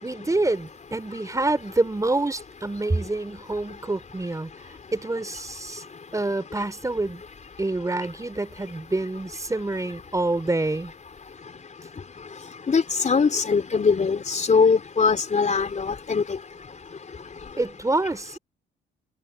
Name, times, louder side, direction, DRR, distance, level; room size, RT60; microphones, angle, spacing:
voice 1, 0.0-4.5 4.9-5.8 6.1-7.2 7.6-10.9 17.6-18.4, right 2 dB, 15° right, 4.1 m, -27 dB
voice 2, 12.7-16.4, left 5 dB, 35° left, 4.4 m, -21 dB
cardioid pair, 90°, 20 cm